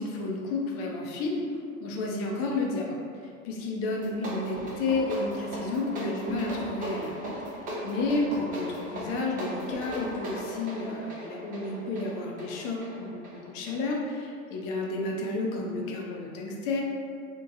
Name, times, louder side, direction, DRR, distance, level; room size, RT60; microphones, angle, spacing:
voice 1, 0.0-3.0 3.4-7.2 7.8-16.8, left 2 dB, 35° left, -1 dB, 0.5 m, -31 dB
sound 1, 3.9-14.2, equal, 20° right, 0.5 m, -38 dB
2.8 x 2.1 x 2.6 m, 2.2 s
hypercardioid pair, 90°, 43 cm